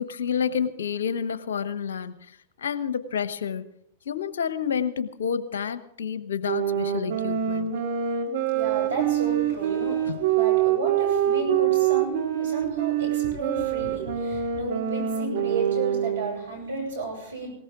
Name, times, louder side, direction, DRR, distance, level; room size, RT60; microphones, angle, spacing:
voice 1, 0.0-2.1 2.6-3.6 4.1-7.7 10.1-10.2, left 7 dB, 75° left, 13 dB, 1.1 m, -29 dB
sound 1, 6.4-16.4, right 10 dB, 60° right, 2.6 m, -25 dB
voice 2, 8.4-17.5, right 3 dB, 80° right, 1 dB, 7.7 m, -32 dB
19.5 x 18.0 x 3.8 m, 0.71 s
hypercardioid pair, 100°, 0 cm